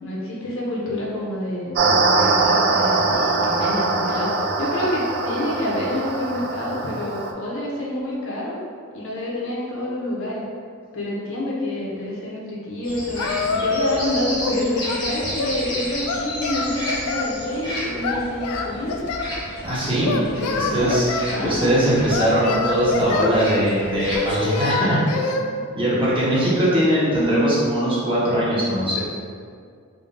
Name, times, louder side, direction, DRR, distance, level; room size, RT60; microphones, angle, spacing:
voice 1, 0.0-8.5 8.9-10.5 10.9-19.0 20.1-20.9 21.3-21.7, left 1 dB, 60° left, -5 dB, 0.8 m, -28 dB
sound 1, 1.8-7.3, right 3 dB, 50° right, 0.3 m, -22 dB
sound 2, 12.8-24.4, equal, 20° left, 0.8 m, -32 dB
Singing, 13.2-14.1 14.4-15.6 16.1-17.3 18.0-19.3 20.0-21.3 22.1-23.4 24.1-25.4, left 4 dB, 85° left, 0.4 m, -26 dB
voice 2, 19.6-20.1 20.5-25.0 25.7-29.0, equal, 25° right, -8 dB, 0.9 m, -20 dB
3.7 x 2.3 x 3.9 m, 2.2 s
head